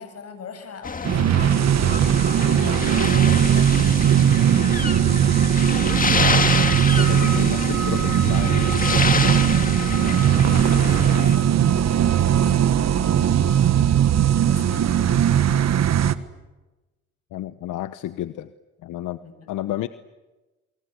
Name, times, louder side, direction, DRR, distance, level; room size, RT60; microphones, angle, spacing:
voice 1, 0.0-4.1 4.6-5.2 7.4-7.7 9.1-9.4 10.0-14.1 14.4-15.5 19.2-19.5, left 5 dB, 55° left, 8 dB, 7.6 m, -41 dB
sound 1, 0.8-11.4, left 4 dB, 25° left, 2.1 m, -27 dB
sound 2, 1.0-16.1, right 9 dB, 60° right, 1.6 m, -19 dB
voice 2, 7.0-9.4 17.3-18.5 18.8-19.2 19.5-19.9, left 14 dB, 85° left, 12 dB, 1.1 m, -32 dB
29.0 x 23.5 x 8.2 m, 1.1 s
cardioid pair, 90°, 30 cm